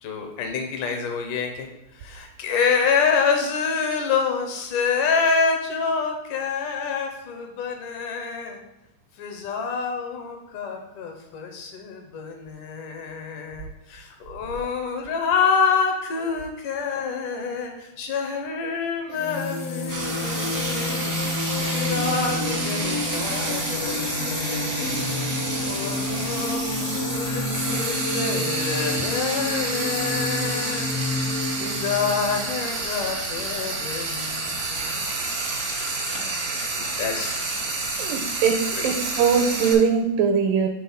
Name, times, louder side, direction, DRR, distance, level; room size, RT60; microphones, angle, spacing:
voice 1, 0.0-8.6 9.2-25.1 25.6-30.9 31.2-35.1 36.7-37.6 38.7-38.9, left 5 dB, 75° left, 3 dB, 2.2 m, -27 dB
sound 1, 19.1-32.5, left 2 dB, 90° left, 1.3 m, -29 dB
Frying (food), 19.9-39.7, right 3 dB, 70° right, 0.9 m, -29 dB
voice 2, 38.0-40.7, right 6 dB, 90° right, 3 dB, 2.3 m, -21 dB
6.3 x 3.7 x 5.5 m, 0.96 s
omnidirectional pair, 4.0 m